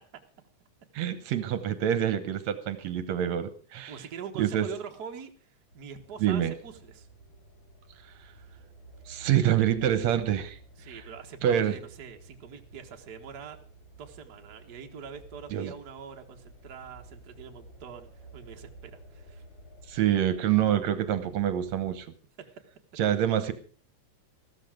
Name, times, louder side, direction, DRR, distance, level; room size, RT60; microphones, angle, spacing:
voice 1, 0.9-4.0 4.4-4.7 6.2-6.5 9.1-10.6 10.9-11.0 11.4-11.8 15.5-15.7 19.9-22.1 23.0-23.5, right 10 dB, 75° right, 12 dB, 2.2 m, -26 dB
voice 2, 3.9-7.1 10.8-13.6 14.0-19.4, right 7 dB, 40° right, 4 dB, 1.6 m, -44 dB
sound 1, 5.7-22.0, right 2 dB, 30° left, 8.2 m, -51 dB
14.5 x 13.5 x 5.0 m, 0.39 s
omnidirectional pair, 3.3 m